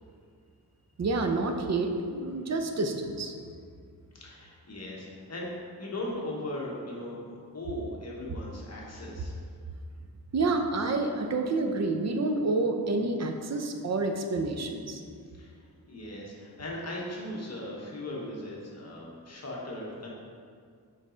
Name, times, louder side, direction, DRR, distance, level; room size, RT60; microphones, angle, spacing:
voice 1, 1.0-3.3 10.3-15.0, right 3 dB, 45° right, 5 dB, 0.6 m, -28 dB
voice 2, 4.1-5.5 5.8-9.4 15.3-15.6 15.9-20.1, left 1 dB, 45° left, -4 dB, 1.1 m, -38 dB
5.4 x 4.1 x 5.0 m, 2.2 s
wide cardioid pair, 125°, 37 cm